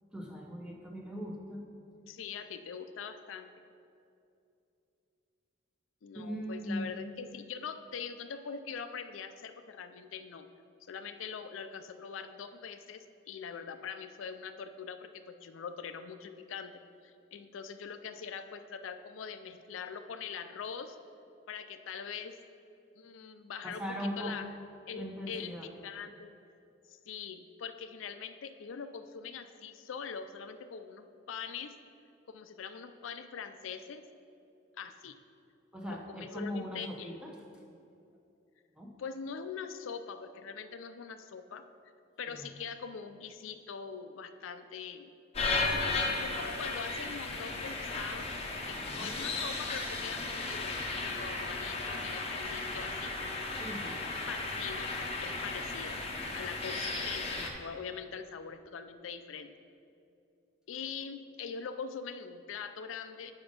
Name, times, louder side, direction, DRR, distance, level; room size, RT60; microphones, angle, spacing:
voice 1, 0.1-1.6 6.1-6.9 23.6-24.4 24.9-25.7 35.7-37.4 38.7-38.9 42.3-42.5 48.8-49.1 53.6-54.0, equal, 5° right, 0 dB, 0.7 m, -39 dB
voice 2, 2.1-3.5 6.0-10.5 10.8-21.0 21.5-22.4 23.0-23.8 24.2-24.5 24.9-25.5 25.8-26.3 26.9-31.8 32.3-34.0 34.8-35.2 35.9-37.2 39.0-41.6 42.2-45.1 46.2-48.3 48.7-53.1 54.3-54.9 55.2-56.0 56.3-59.5 60.7-63.3, left 6 dB, 85° left, 9 dB, 0.4 m, -43 dB
sound 1, 45.3-57.5, left 3 dB, 30° left, 0.7 m, -35 dB
7.8 x 5.2 x 5.2 m, 2.6 s
head